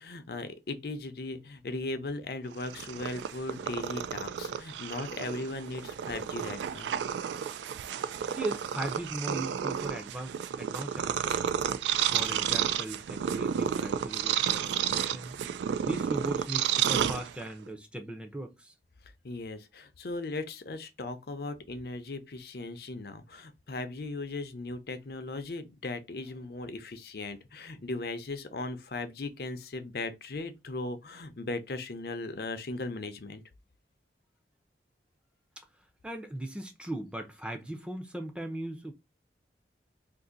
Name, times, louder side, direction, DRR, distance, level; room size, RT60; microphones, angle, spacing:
voice 1, 0.0-6.9 19.2-33.4, left 2 dB, 60° left, 0.6 m, -38 dB
Purr, 2.5-17.7, right 9 dB, 85° right, 0.3 m, -31 dB
voice 2, 8.4-11.5 12.1-15.4 15.8-18.7 36.0-38.9, right 1 dB, 5° right, 0.5 m, -38 dB
2.6 x 2.6 x 3.8 m
head